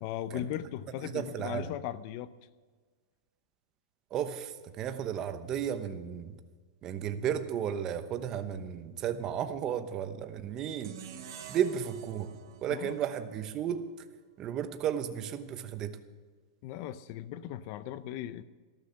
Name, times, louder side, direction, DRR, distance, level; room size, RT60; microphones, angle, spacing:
voice 1, 0.0-2.3 12.7-12.9 16.6-18.4, left 11 dB, 40° left, 0.6 m, -38 dB
voice 2, 1.0-1.7 4.1-6.4 6.8-10.9 11.5-13.9 14.4-16.0, right 9 dB, 25° right, 0.9 m, -34 dB
sound 1, 10.8-14.0, right 8 dB, 65° right, 2.0 m, -48 dB
13.5 x 13.0 x 5.8 m
supercardioid pair, 165°, 2 cm